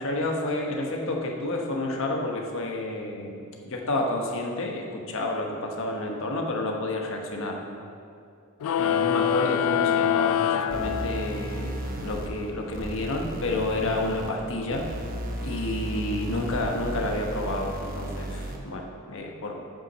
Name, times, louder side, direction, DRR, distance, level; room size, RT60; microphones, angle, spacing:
voice 1, 0.0-7.6 8.8-14.8 15.4-19.6, left 2 dB, 60° left, 2 dB, 1.1 m, -30 dB
sound 1, 8.6-11.6, left 9 dB, 85° left, 0.3 m, -25 dB
sound 2, 10.7-18.7, equal, 40° right, 0.9 m, -35 dB
8.5 x 5.8 x 6.1 m, 2.5 s
head